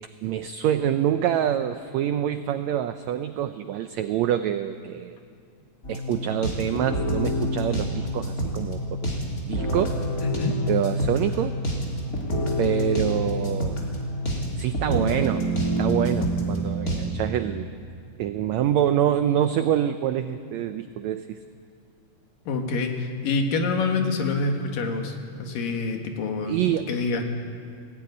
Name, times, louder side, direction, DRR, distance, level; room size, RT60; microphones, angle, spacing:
voice 1, 0.2-5.2 5.9-9.1 9.5-10.0 10.7-11.6 12.6-13.7 14.6-15.5 15.8-17.7 18.2-21.4 26.5-26.9, right 10 dB, 85° right, 9 dB, 1.6 m, -26 dB
sound 1, 5.8-17.0, equal, 25° left, 3.4 m, -27 dB
voice 2, 10.2-10.5 22.5-27.3, left 3 dB, 75° left, 4 dB, 3.4 m, -27 dB
18.5 x 17.0 x 9.6 m, 2.2 s
omnidirectional pair, 3.9 m